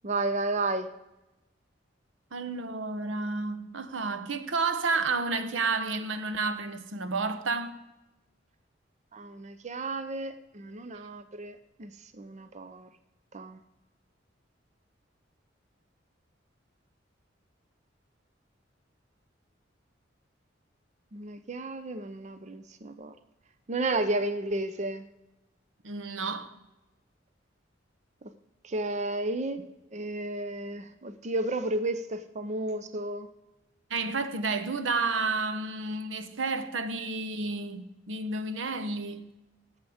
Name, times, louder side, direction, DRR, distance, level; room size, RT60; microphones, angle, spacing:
voice 1, 0.0-0.9 9.1-12.9 13.3-13.6 21.1-23.1 23.7-25.1 28.6-33.3, right 2 dB, 40° right, 0.6 m, -32 dB
voice 2, 2.3-7.8 25.8-26.5 33.9-39.3, right 3 dB, 80° right, 0.9 m, -31 dB
17.5 x 7.4 x 5.0 m
head